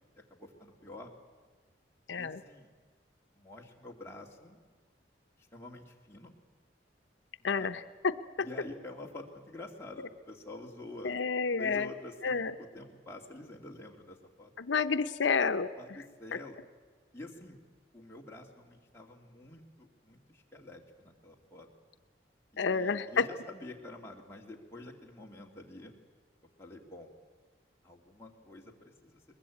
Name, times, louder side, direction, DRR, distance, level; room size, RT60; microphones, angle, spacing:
voice 1, 0.2-1.1 2.1-2.7 3.3-4.6 5.5-6.3 7.4-7.7 8.4-11.2 11.6-14.5 15.8-16.6 17.1-17.6 17.9-21.7 22.5-25.9 26.6-27.1 27.8-29.2, left 2 dB, 15° left, -1 dB, 2.4 m, -48 dB
voice 2, 2.1-2.4 7.4-8.1 8.4-8.5 11.0-11.9 12.2-12.5 14.6-15.7 16.3-16.4 22.6-23.2, left 5 dB, 90° left, 10 dB, 0.7 m, -29 dB
21.5 x 21.0 x 8.5 m, 1.4 s
head